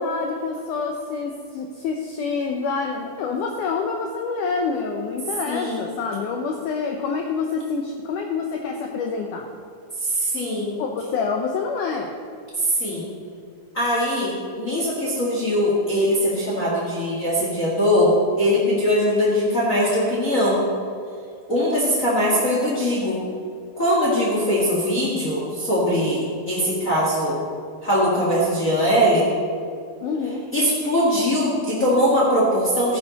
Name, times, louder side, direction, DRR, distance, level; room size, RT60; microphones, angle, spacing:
voice 1, 0.0-9.5 10.8-12.1 30.0-30.5, left 5 dB, 85° left, 2 dB, 1.8 m, -27 dB
voice 2, 5.5-5.8 10.0-10.7 12.6-13.0 13.7-20.7 21.5-23.2 23.8-27.4 27.8-29.3 30.5-33.0, equal, 40° left, -5 dB, 1.2 m, -21 dB
13.5 x 9.9 x 4.1 m, 2.2 s
omnidirectional pair, 4.5 m